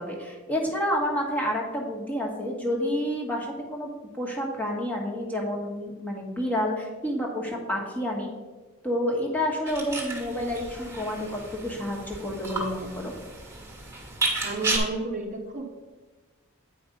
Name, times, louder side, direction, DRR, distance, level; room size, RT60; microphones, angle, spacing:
voice 1, 0.0-3.9 4.2-8.3 8.8-13.1, equal, 5° left, -1 dB, 1.3 m, -29 dB
sound 1, 9.7-14.8, right 3 dB, 15° right, 1.5 m, -33 dB
voice 2, 14.4-15.6, right 3 dB, 35° right, 2 dB, 0.8 m, -31 dB
8.4 x 5.1 x 5.3 m, 1.2 s
head